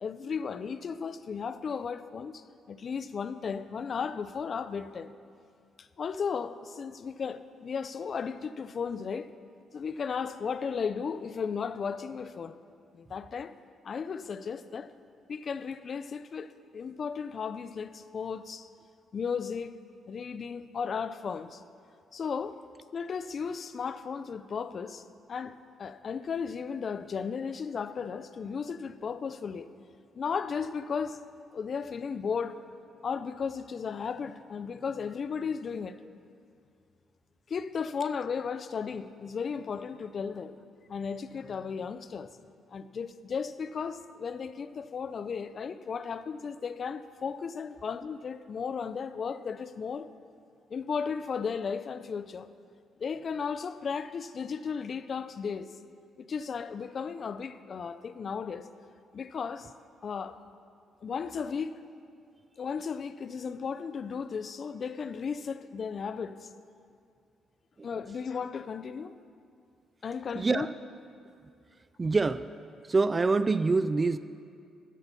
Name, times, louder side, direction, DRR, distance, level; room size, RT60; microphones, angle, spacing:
voice 1, 0.0-5.1 5.8-9.3 9.7-12.6 12.9-13.5 13.8-14.9 15.3-18.7 19.1-19.8 20.1-21.6 22.1-22.6 22.9-29.7 30.1-31.2 31.5-32.6 33.0-36.0 37.5-40.5 40.9-42.3 42.7-50.1 50.7-52.5 53.0-55.7 56.2-58.7 59.1-59.7 60.0-60.4 61.0-61.8 62.6-66.5 67.8-69.1 70.0-70.7, left 6 dB, 50° left, 0.5 m, -35 dB
voice 2, 70.4-70.7 72.0-72.4 72.9-74.2, right 3 dB, 30° right, 0.3 m, -25 dB
14.0 x 8.4 x 5.5 m
cardioid pair, 90°, 0 cm